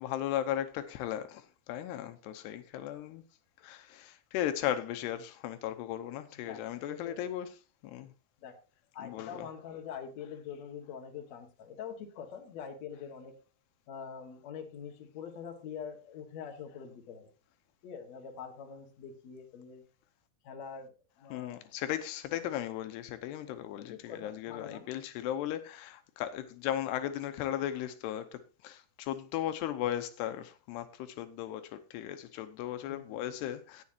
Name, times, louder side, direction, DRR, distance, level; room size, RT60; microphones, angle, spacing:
voice 1, 0.0-3.2 3.6-7.5 7.8-8.1 9.0-9.5 21.3-33.8, left 11 dB, 85° left, 2.9 m, -36 dB
voice 2, 8.9-13.3 13.9-17.3 17.8-19.8 20.4-21.7 23.9-24.9 32.9-33.2, left 7 dB, 50° left, 2.5 m, -44 dB
17.0 x 7.6 x 2.8 m
omnidirectional pair, 4.7 m